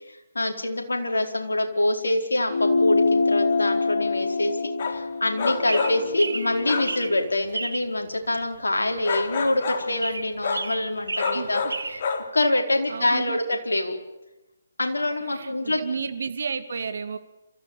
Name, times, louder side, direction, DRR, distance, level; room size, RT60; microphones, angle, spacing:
voice 1, 0.0-11.6 12.3-14.0 14.8-16.1, left 1 dB, 80° left, 3 dB, 4.5 m, -25 dB
sound 1, 2.5-7.3, left 3 dB, 65° left, 1.9 m, -25 dB
sound 2, 4.8-5.0 5.4-6.1 6.6-7.0 9.0-9.9 10.4-10.7 11.2-12.3, left 5 dB, 45° left, 3.0 m, -28 dB
sound 3, 5.4-12.0, right 3 dB, 75° right, 2.1 m, -33 dB
voice 2, 11.3-11.7 12.9-13.4 15.2-17.2, right 5 dB, 60° right, 10 dB, 2.5 m, -32 dB
27.5 x 15.0 x 8.8 m, 1.0 s
figure-of-eight pair, 145°, 0 cm